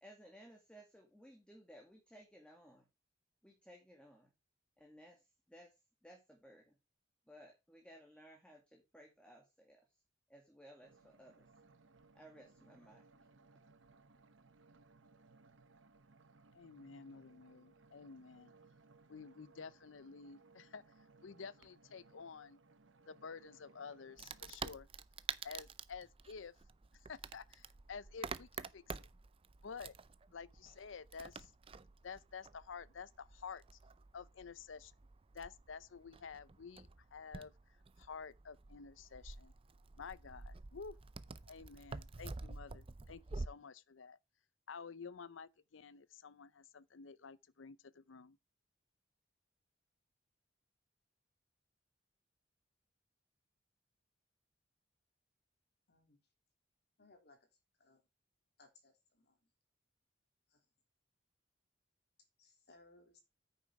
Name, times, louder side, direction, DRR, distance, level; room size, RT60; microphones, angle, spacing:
voice 1, 0.0-2.9 3.4-4.3 4.8-5.7 6.0-6.8 7.3-9.8 10.3-11.5 12.1-13.0, equal, 5° left, 1.9 m, -59 dB
sound 1, 10.8-24.5, right 3 dB, 80° right, 1.0 m, -65 dB
voice 2, 16.5-18.5 19.1-20.8 21.2-22.6 23.1-24.9 25.4-26.5 27.1-29.1 29.6-29.9 30.3-31.5 32.0-33.8 34.1-34.9 35.3-37.5 38.0-39.5 40.0-41.0 41.5-44.2 44.7-48.4, left 5 dB, 85° left, 0.6 m, -51 dB
Wood, 24.2-43.5, right 4 dB, 30° right, 0.5 m, -49 dB
voice 3, 55.9-56.2 57.0-57.4 57.8-58.0 58.6-59.4 60.5-60.6 62.4-63.2, left 2 dB, 60° left, 3.1 m, -65 dB
9.2 x 6.9 x 4.8 m
head